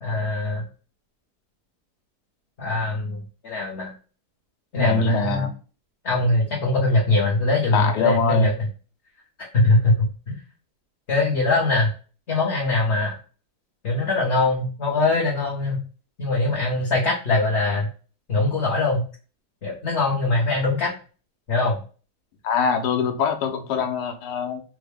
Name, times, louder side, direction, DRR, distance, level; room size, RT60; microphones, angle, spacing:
voice 1, 0.0-0.7 2.6-3.9 4.7-5.4 6.0-8.5 9.5-10.4 11.1-11.9 12.3-13.1 13.8-15.8 16.2-17.9 18.3-19.0 19.6-20.9 21.5-21.8, left 2 dB, 50° left, -3 dB, 1.0 m, -22 dB
voice 2, 4.8-5.5 7.7-8.5 22.4-24.6, left 5 dB, 90° left, 5 dB, 1.3 m, -23 dB
3.4 x 2.1 x 3.3 m, 0.37 s
omnidirectional pair, 1.7 m